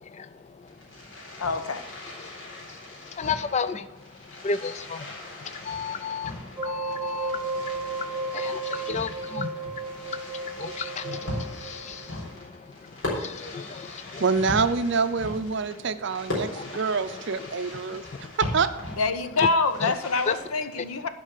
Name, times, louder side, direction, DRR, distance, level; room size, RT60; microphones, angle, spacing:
Fireworks, 0.6-20.4, left 1 dB, 55° left, 3.7 m, -39 dB
voice 1, 1.4-1.8 19.0-21.1, left 3 dB, 85° left, 10 dB, 0.8 m, -26 dB
voice 2, 3.1-3.9 4.4-5.1 5.4-12.8 13.0-14.2 16.5-16.7 19.4-19.5 19.8-19.9, left 5 dB, 30° left, 14 dB, 0.3 m, -34 dB
sound 1, 6.6-12.3, right 3 dB, 10° right, 0.6 m, -34 dB
voice 3, 14.2-18.0 18.4-18.7, right 5 dB, 55° right, 11 dB, 0.5 m, -26 dB
11.0 x 5.4 x 6.6 m, 0.98 s
head